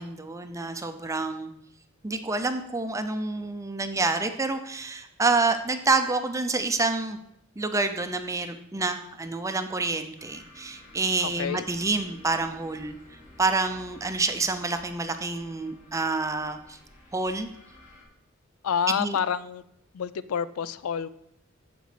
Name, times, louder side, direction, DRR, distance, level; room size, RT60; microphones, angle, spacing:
voice 1, 0.0-1.5 2.0-7.2 7.6-13.0 13.4-16.8 17.1-17.5 18.9-19.2, right 3 dB, 15° right, 8 dB, 0.4 m, -28 dB
sound 1, 10.2-18.0, left 2 dB, 40° left, 2.5 m, -52 dB
voice 2, 11.2-11.6 18.6-19.6 19.9-21.1, left 7 dB, 85° left, 16 dB, 0.4 m, -28 dB
14.5 x 5.1 x 3.3 m, 0.80 s
head